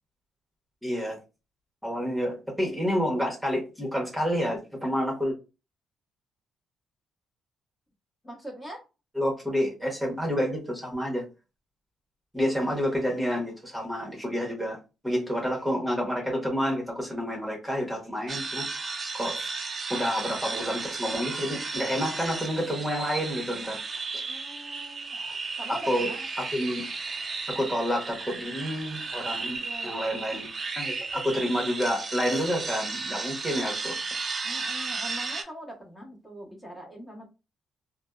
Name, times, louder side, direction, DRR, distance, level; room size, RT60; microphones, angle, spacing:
voice 1, 0.8-1.2 1.8-5.4 9.2-11.3 12.3-14.8 15.0-18.7 19.1-19.5 19.9-23.8 24.1-24.2 25.9-26.1 26.4-26.8 27.5-30.5 30.8-33.9, equal, 5° right, 1.0 m, -29 dB
voice 2, 8.2-8.8 24.3-26.3 29.6-30.4 34.4-37.3, right 1 dB, 20° left, 1.0 m, -42 dB
sound 1, 18.3-35.4, right 4 dB, 40° right, 0.5 m, -34 dB
2.6 x 2.1 x 2.3 m
cardioid pair, 90°, 0 cm